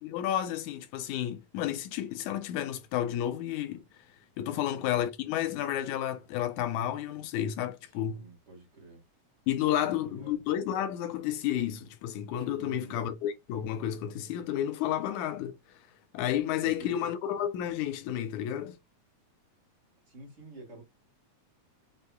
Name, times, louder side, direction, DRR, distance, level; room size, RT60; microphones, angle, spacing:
voice 1, 0.0-3.8 4.4-8.2 9.5-15.5 16.1-18.8, left 11 dB, 90° left, 2.0 m, -31 dB
voice 2, 4.4-4.8 7.9-9.0 9.8-10.4 12.6-13.0 16.6-16.9 20.1-20.8, right 3 dB, 30° right, 1.6 m, -49 dB
6.6 x 2.7 x 2.3 m
omnidirectional pair, 3.4 m